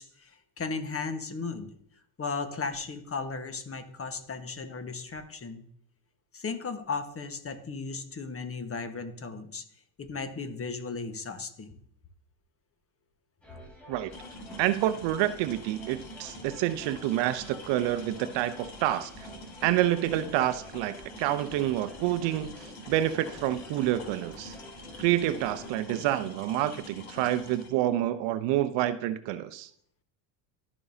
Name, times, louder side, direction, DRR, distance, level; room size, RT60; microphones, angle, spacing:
voice 1, 0.0-1.7 2.2-5.7 6.3-9.6 10.0-11.8, left 4 dB, 25° left, 8 dB, 1.3 m, -36 dB
sound 1, 13.4-25.7, left 1 dB, ahead, 3.6 m, -50 dB
sound 2, 14.1-27.7, left 1 dB, 45° left, 2.9 m, -46 dB
voice 2, 14.6-19.1 19.6-22.5 22.9-24.5 25.0-29.7, right 13 dB, 60° right, 13 dB, 0.7 m, -28 dB
14.0 x 5.4 x 2.8 m, 0.64 s
hypercardioid pair, 75°, 50 cm